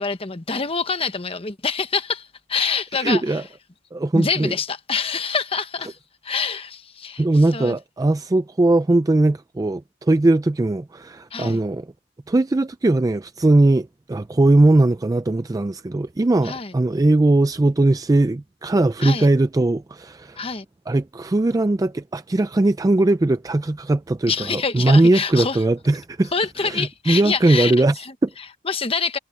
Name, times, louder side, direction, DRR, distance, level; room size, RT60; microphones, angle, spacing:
voice 1, 0.0-3.4 4.1-6.0 6.2-7.2 7.5-7.8 11.3-11.6 16.4-16.7 19.0-19.3 20.4-20.6 24.3-25.6 26.3-29.2, left 5 dB, 30° left, 1.1 m, -26 dB
voice 2, 2.9-3.4 3.9-4.5 7.2-11.9 12.3-20.4 20.9-26.3 26.6-27.9 28.2-28.3, right 2 dB, 20° right, 0.3 m, -19 dB
head